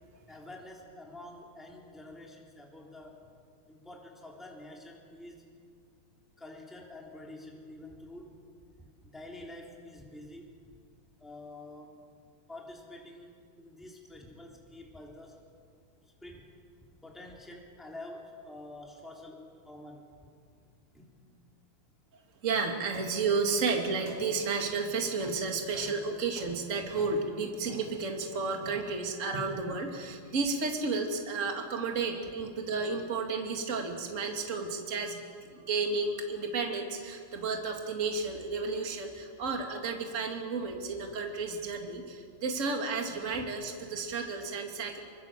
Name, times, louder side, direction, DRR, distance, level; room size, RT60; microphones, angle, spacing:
voice 1, 0.3-3.2 3.7-5.4 6.4-8.4 8.8-10.8 11.2-11.9 12.5-15.4 16.2-16.5 17.0-20.1 20.9-21.1 43.3-43.5, left 1 dB, ahead, -1 dB, 3.2 m, -48 dB
voice 2, 22.4-35.2 35.5-45.0, right 4 dB, 25° right, 3 dB, 2.3 m, -32 dB
sound 1, 22.9-29.0 29.3-29.8, right 2 dB, 50° right, 3.3 m, -49 dB
25.0 x 24.5 x 7.5 m, 2.2 s
omnidirectional pair, 3.7 m